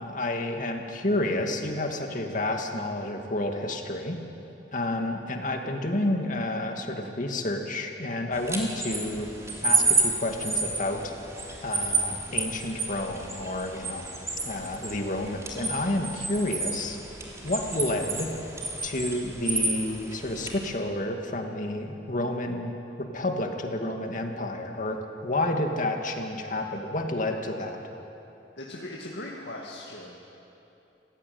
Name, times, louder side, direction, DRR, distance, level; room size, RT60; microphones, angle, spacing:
voice 1, 0.0-4.2 4.7-9.3 9.6-11.1 11.6-14.0 14.5-17.0 17.4-18.3 18.8-22.7 23.0-27.8, left 1 dB, 45° left, 3 dB, 2.3 m, -30 dB
sound 1, 8.3-20.7, right 3 dB, 15° right, 3.6 m, -30 dB
voice 2, 28.6-30.2, left 1 dB, 70° left, -2 dB, 2.2 m, -39 dB
26.5 x 16.0 x 9.5 m, 2.9 s
head